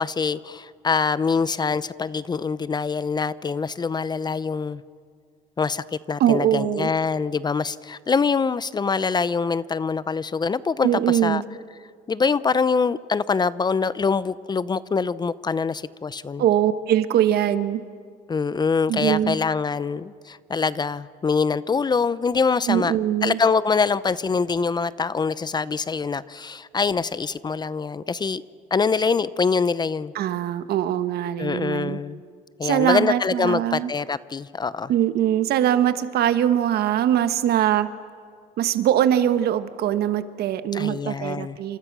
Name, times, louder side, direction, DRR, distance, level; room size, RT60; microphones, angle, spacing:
voice 1, 0.0-4.8 5.6-11.4 12.1-16.4 18.3-22.9 23.2-28.4 28.7-30.1 31.4-32.2 32.6-34.9 40.7-41.6, left 5 dB, 25° left, 17 dB, 0.6 m, -24 dB
voice 2, 6.2-6.9 10.8-11.4 16.4-17.8 18.9-19.4 22.7-23.4 30.1-32.0 32.6-33.9 34.9-37.9 38.6-41.8, right 11 dB, 70° right, 12 dB, 1.3 m, -22 dB
29.0 x 26.5 x 6.1 m, 2.2 s
cardioid pair, 110°, 17 cm